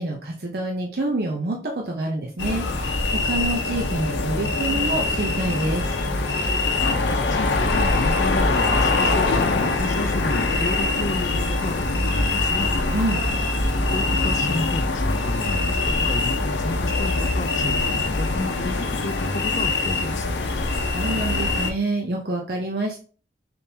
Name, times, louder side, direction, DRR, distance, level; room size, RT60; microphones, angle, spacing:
voice 1, 0.0-5.8 12.9-13.2 20.7-23.0, right 2 dB, 60° right, 0 dB, 0.6 m, -27 dB
sound 1, 2.4-21.7, left 2 dB, 80° left, 0.6 m, -23 dB
sound 2, 2.8-10.5, right 1 dB, 75° right, 1.0 m, -40 dB
voice 2, 7.0-12.8 13.7-20.4, left 2 dB, 40° left, 9 dB, 0.4 m, -31 dB
4.2 x 3.6 x 2.7 m, 0.40 s
head